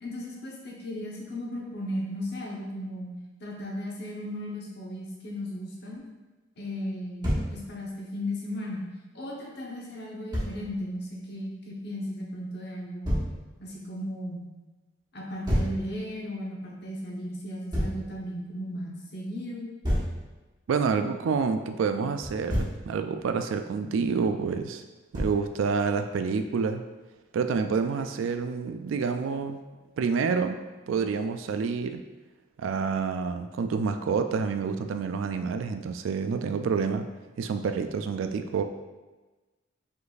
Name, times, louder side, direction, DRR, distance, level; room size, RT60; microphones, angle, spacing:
voice 1, 0.0-3.1 3.4-6.1 6.6-8.9 9.1-13.2 13.6-14.5 15.1-19.7, equal, 60° left, -3 dB, 1.1 m, -36 dB
Thump thud, 7.2-7.5 10.3-10.5 13.0-13.3 15.5-15.8 17.7-18.0 19.8-20.2 22.2-22.8 25.1-25.5, equal, 25° right, 1.3 m, -27 dB
voice 2, 20.7-24.8 25.1-26.8 27.3-29.6 30.0-30.6 30.9-32.0 32.6-37.0 37.4-38.6, right 5 dB, 90° right, 7 dB, 0.3 m, -28 dB
5.2 x 4.0 x 2.5 m, 1.2 s
head